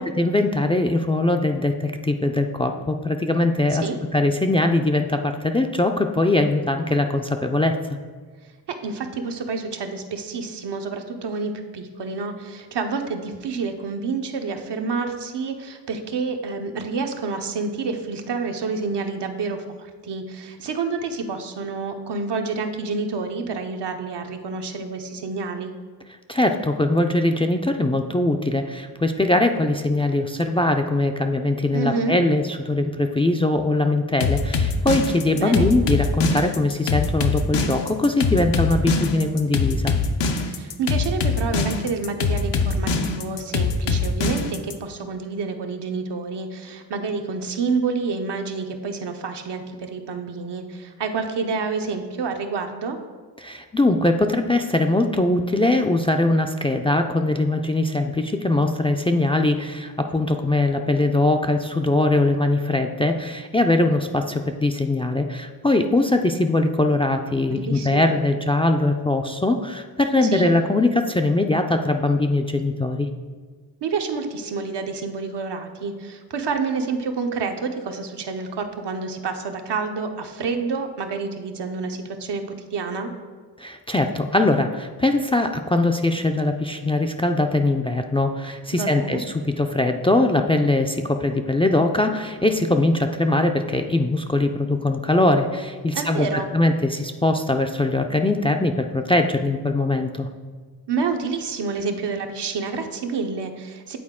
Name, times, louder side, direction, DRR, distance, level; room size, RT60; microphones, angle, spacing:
voice 1, 0.2-3.8 4.1-7.8 26.3-40.0 53.4-73.1 83.6-100.3, left 2 dB, 15° left, 4 dB, 0.3 m, -21 dB
voice 2, 8.7-25.7 31.7-32.2 35.3-35.7 40.5-53.0 67.5-68.1 70.2-70.5 73.8-83.1 88.7-89.2 95.9-96.5 100.9-104.0, right 4 dB, 75° right, 5 dB, 0.8 m, -28 dB
sound 1, 34.2-44.7, left 5 dB, 75° left, 0.6 m, -23 dB
8.6 x 4.0 x 3.6 m, 1.5 s
cardioid pair, 60°, 42 cm